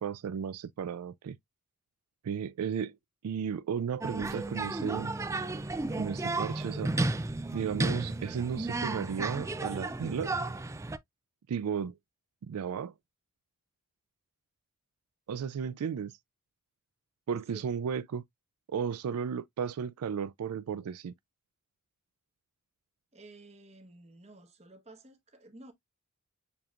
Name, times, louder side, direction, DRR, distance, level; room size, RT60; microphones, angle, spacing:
voice 1, 0.0-1.4 2.2-2.9 3.2-5.1 6.0-6.9 7.5-10.3 11.5-12.0 12.4-12.9 15.3-16.1 17.3-18.2 18.7-21.1, right 7 dB, 85° right, 0.4 m, -34 dB
sound 1, 4.0-11.0, right 2 dB, 15° right, 0.3 m, -33 dB
voice 2, 23.1-25.7, right 2 dB, 30° right, 1.1 m, -52 dB
6.9 x 2.9 x 2.4 m
head